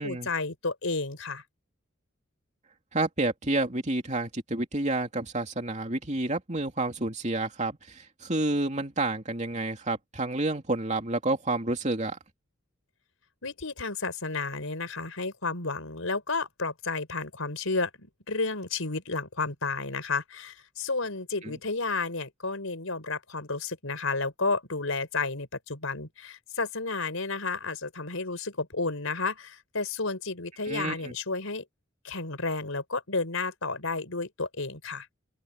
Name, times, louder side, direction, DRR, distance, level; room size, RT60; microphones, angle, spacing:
voice 1, 0.0-1.4 13.4-31.6 32.0-35.1, left 3 dB, 90° left, 4.7 m, -32 dB
voice 2, 2.9-12.2 21.4-21.5 30.7-31.1, right 2 dB, 35° right, 2.9 m, -29 dB
open air
head